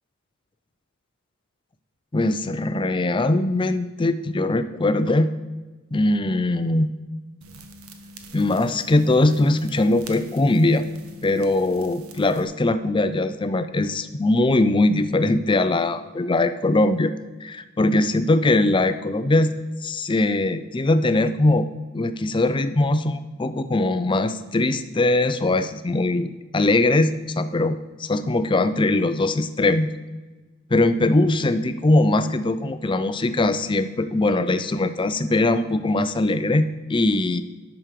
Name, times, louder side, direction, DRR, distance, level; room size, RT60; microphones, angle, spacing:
voice 1, 2.1-5.3 5.9-6.9 8.3-10.9 11.2-17.1 17.4-19.6 19.8-21.7 21.9-29.9 30.7-37.4, left 2 dB, 20° left, 11 dB, 0.5 m, -21 dB
sound 1, 7.4-12.4, right 1 dB, 70° right, 1.1 m, -44 dB
9.0 x 6.2 x 6.5 m, 1.2 s
head